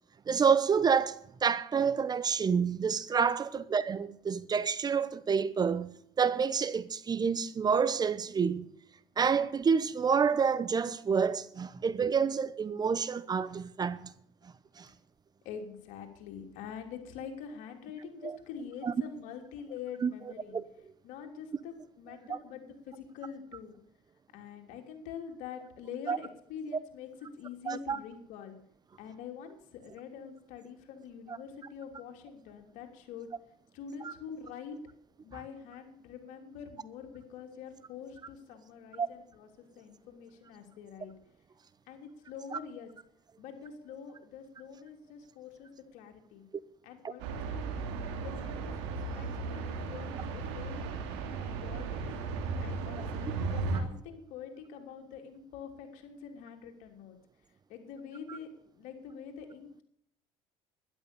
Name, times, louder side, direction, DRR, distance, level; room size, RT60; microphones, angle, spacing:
voice 1, 0.3-8.7 9.2-14.1 14.8-14.9 18.2-18.3 18.8-18.9 20.0-20.1 20.5-20.6 22.3-22.4 26.1-26.2 27.7-28.0 34.0-34.1 39.0-39.1 42.5-42.6 47.0-47.1 58.3-58.4, right 6 dB, 30° right, 0.9 m, -28 dB
voice 2, 15.4-20.6 21.0-23.7 24.3-28.6 29.0-33.3 33.7-34.8 35.2-41.1 41.9-42.9 43.4-46.4 46.8-47.6 48.2-50.8 51.4-52.2 52.6-57.2 57.7-59.8, left 7 dB, 75° left, 3.2 m, -45 dB
sound 1, 47.2-53.8, right 4 dB, 90° right, 2.7 m, -36 dB
12.5 x 11.0 x 6.9 m
supercardioid pair, 90°, 13 cm